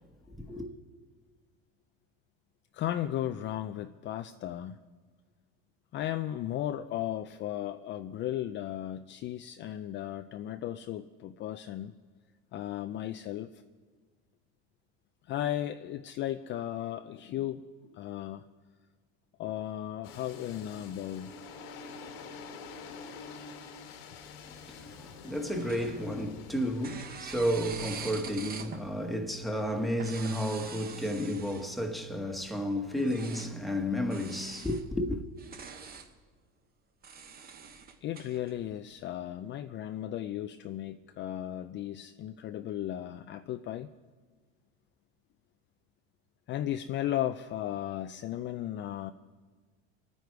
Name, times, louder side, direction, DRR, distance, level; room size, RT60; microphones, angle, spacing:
voice 1, 0.4-0.7 24.7-35.2, equal, ahead, 1.4 m, -32 dB
voice 2, 2.7-4.8 5.9-11.9 12.5-13.6 15.3-17.7 17.9-18.4 19.4-21.3 38.0-43.9 46.5-49.1, left 12 dB, 40° left, 0.5 m, -35 dB
sound 1, 20.0-29.9, left 5 dB, 75° left, 1.7 m, -48 dB
sound 2, 25.5-26.4 26.8-28.9 29.9-31.8 33.0-33.5 34.1-34.8 35.3-36.1 37.0-38.5, right 6 dB, 30° right, 1.1 m, -44 dB
26.0 x 9.4 x 4.7 m
supercardioid pair, 125°, 30 cm